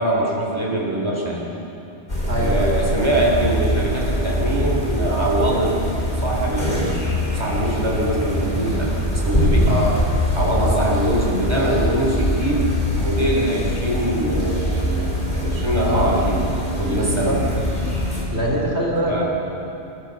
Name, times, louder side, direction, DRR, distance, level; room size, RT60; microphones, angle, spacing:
voice 1, 0.0-1.5 2.4-5.7 6.2-7.0 7.3-9.8 10.4-15.0 15.3-16.4 16.8-17.4 19.1-19.2, right 1 dB, 25° right, -3 dB, 4.1 m, -23 dB
sound 1, 2.1-18.2, equal, 40° left, 4.4 m, -23 dB
voice 2, 2.2-2.7 9.7-10.0 10.6-11.0 15.8-16.2 16.9-17.4 18.3-19.2, equal, 70° right, -3 dB, 4.0 m, -24 dB
28.5 x 15.0 x 6.9 m, 2.8 s
omnidirectional pair, 1.2 m